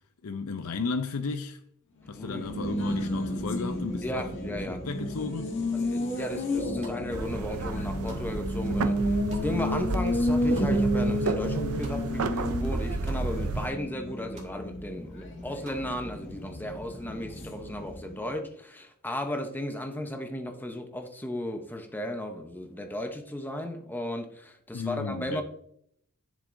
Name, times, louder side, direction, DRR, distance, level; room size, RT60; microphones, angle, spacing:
voice 1, 0.2-1.6 2.1-4.2 4.8-5.6 24.7-25.4, left 4 dB, 80° left, 0.6 m, -34 dB
Race car auto racing, 2.1-18.3, equal, 60° left, 1.7 m, -31 dB
voice 2, 2.2-2.5 4.0-5.3 5.7-25.4, left 1 dB, 10° left, 0.8 m, -35 dB
sound 1, 6.6-7.3 7.6-12.4 12.6-13.2 13.6-13.7 14.0-14.5 14.9-15.9, right 2 dB, 30° right, 2.3 m, -50 dB
sound 2, 7.1-13.7, right 3 dB, 85° right, 0.6 m, -32 dB
10.5 x 7.0 x 2.6 m
head